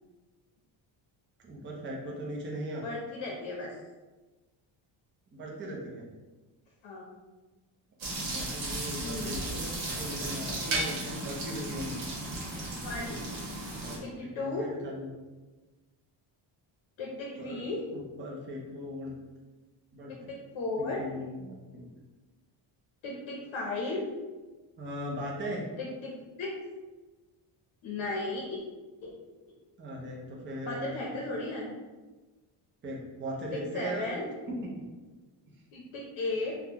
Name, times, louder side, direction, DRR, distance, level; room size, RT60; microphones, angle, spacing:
voice 1, 1.4-2.8 5.3-6.1 8.2-9.7 9.9-12.1 13.8-15.1 17.4-19.1 19.9-20.3 20.8-21.5 21.7-21.9 24.8-25.6 29.8-31.1 32.8-34.1 34.5-34.8 35.5-35.6, equal, 25° right, -2 dB, 0.5 m, -39 dB
voice 2, 2.8-3.7 6.8-7.1 9.0-9.4 12.8-13.2 14.0-14.7 17.0-17.8 20.1-21.0 23.0-24.1 25.8-26.1 26.4-26.5 27.8-28.6 29.0-29.1 30.6-31.7 33.5-34.3 35.7-36.5, left 2 dB, 65° left, -1 dB, 0.7 m, -35 dB
sound 1, 8.0-14.0, right 2 dB, 65° right, 1.2 m, -35 dB
3.6 x 2.3 x 2.8 m, 1.2 s
cardioid pair, 145°, 50 cm